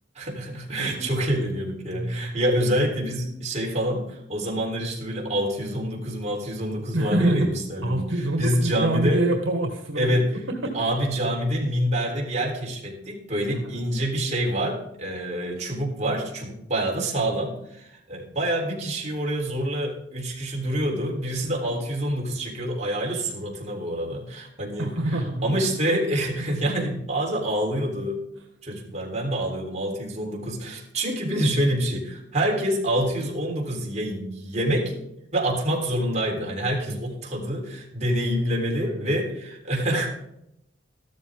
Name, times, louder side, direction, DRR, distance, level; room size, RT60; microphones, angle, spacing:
voice 1, 0.2-9.2 10.0-10.4 10.7-28.2 28.6-34.9 35.3-40.1, right 1 dB, 40° right, -1 dB, 3.6 m, -27 dB
voice 2, 0.8-1.1 1.9-2.4 6.9-10.2 10.6-10.7 13.5-13.8 21.4-21.5 24.8-25.5 26.5-26.6 36.7-37.0 38.8-39.2, right 1 dB, 80° right, 3 dB, 1.7 m, -26 dB
14.5 x 13.0 x 3.6 m, 0.77 s
head